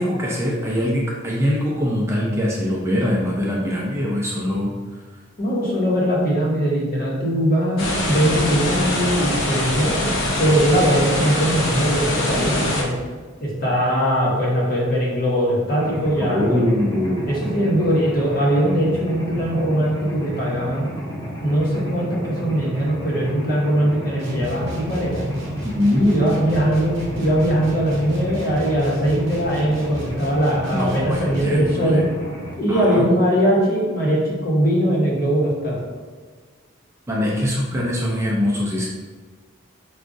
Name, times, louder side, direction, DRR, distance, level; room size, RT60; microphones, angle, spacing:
voice 1, 0.0-4.7 16.2-17.3 25.6-26.1 30.7-32.0 32.7-33.1 37.1-38.9, left 1 dB, 15° right, -4 dB, 0.4 m, -22 dB
voice 2, 5.4-10.1 10.4-12.9 13.4-16.7 17.3-20.9 21.4-25.3 25.9-32.0 32.6-35.8, equal, 45° left, -5 dB, 0.9 m, -20 dB
sound 1, 7.8-12.8, left 1 dB, 75° left, 0.7 m, -23 dB
Mechanisms, 15.7-32.5, equal, 20° left, 0.9 m, -32 dB
sound 2, 24.2-31.7, equal, 70° right, 0.9 m, -34 dB
4.7 x 2.3 x 2.6 m, 1.5 s
head